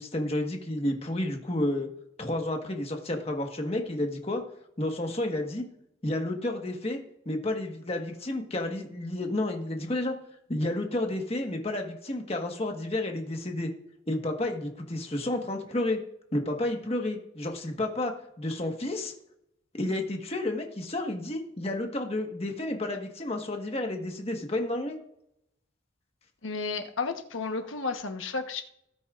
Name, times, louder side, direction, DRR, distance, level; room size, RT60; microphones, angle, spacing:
voice 1, 0.0-1.9 2.2-4.4 4.8-5.6 6.0-7.0 7.2-10.1 10.5-13.7 14.1-16.0 16.3-19.1 19.7-25.0, left 1 dB, 30° left, 3 dB, 1.4 m, -31 dB
voice 2, 26.4-28.6, left 4 dB, 90° left, 6 dB, 1.1 m, -32 dB
18.5 x 8.4 x 2.5 m, 0.78 s
head